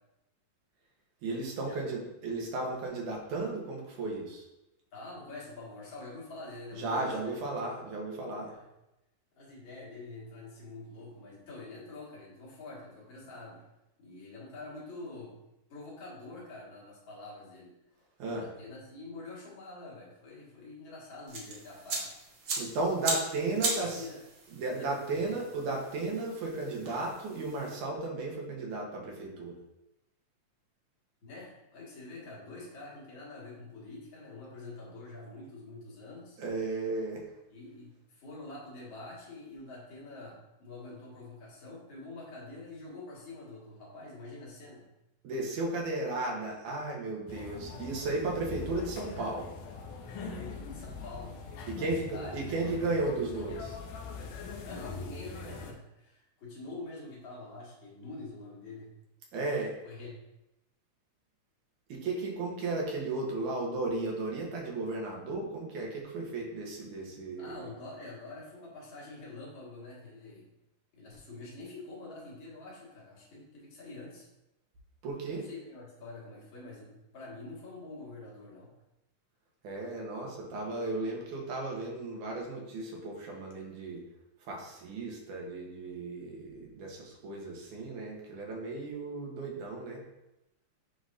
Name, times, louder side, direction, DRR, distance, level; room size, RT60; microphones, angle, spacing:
voice 1, 1.2-4.5 6.7-8.5 18.2-18.4 22.6-24.1 24.5-29.6 36.4-37.2 45.2-49.5 51.7-53.8 59.3-59.8 61.9-67.6 75.0-75.5 79.6-84.0 84.4-90.0, right 2 dB, 75° right, -1 dB, 2.7 m, -35 dB
voice 2, 4.9-7.4 8.5-8.7 9.4-13.6 14.0-15.4 15.7-17.7 18.3-22.1 23.8-24.2 24.7-25.4 31.2-36.4 37.5-44.9 50.1-52.7 54.6-58.9 59.8-60.2 67.4-70.5 70.9-74.3 75.3-78.7, left 2 dB, 45° left, -5 dB, 2.5 m, -46 dB
sound 1, 21.3-27.7, right 3 dB, 55° right, 1.2 m, -38 dB
sound 2, 47.3-55.7, left 4 dB, 90° left, 2.4 m, -42 dB
9.6 x 4.0 x 2.7 m, 0.92 s
omnidirectional pair, 3.6 m